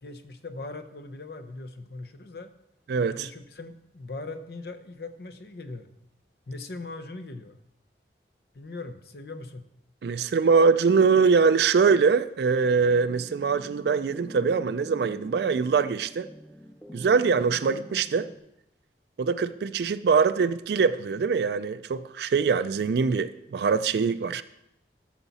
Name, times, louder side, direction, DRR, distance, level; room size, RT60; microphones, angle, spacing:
voice 1, 0.0-2.5 3.1-5.9 6.5-7.6 8.5-9.6, left 2 dB, 65° left, 0.7 m, -40 dB
voice 2, 2.9-3.3 10.0-16.3 16.9-18.3 19.2-24.4, right 5 dB, 70° right, 0.4 m, -23 dB
sound 1, 12.8-18.4, left 1 dB, 5° left, 0.6 m, -45 dB
13.5 x 5.8 x 4.1 m
head